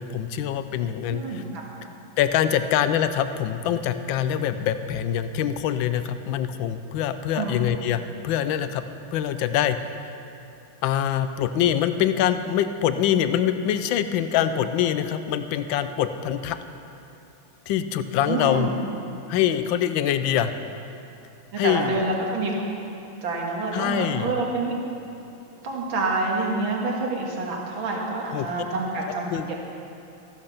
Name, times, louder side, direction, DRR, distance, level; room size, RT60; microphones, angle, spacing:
voice 1, 0.0-1.4 2.2-8.8 9.1-10.1 10.8-16.6 17.7-18.7 19.3-20.5 21.6-22.0 23.7-24.3 28.3-28.5 29.3-29.5, left 10 dB, 75° left, 10 dB, 1.4 m, -24 dB
voice 2, 1.1-1.6 7.3-7.6 18.3-18.7 21.5-22.5 23.2-24.8 25.6-29.6, right 3 dB, 75° right, -1 dB, 2.5 m, -27 dB
14.5 x 12.0 x 5.8 m, 2.8 s
omnidirectional pair, 2.2 m